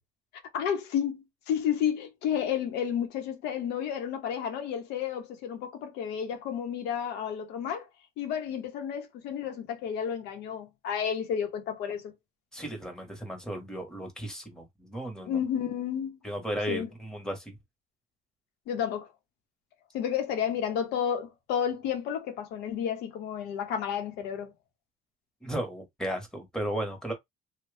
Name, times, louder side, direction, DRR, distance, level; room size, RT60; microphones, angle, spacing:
voice 1, 0.5-7.9 8.2-12.1 15.2-16.2 16.7-16.9 18.7-19.1 19.9-24.5, left 8 dB, 90° left, 1.1 m, -31 dB
voice 2, 12.5-15.4 16.2-17.5 25.4-27.1, right 1 dB, 5° left, 1.3 m, -35 dB
2.9 x 2.3 x 3.4 m
cardioid pair, 110°, 17 cm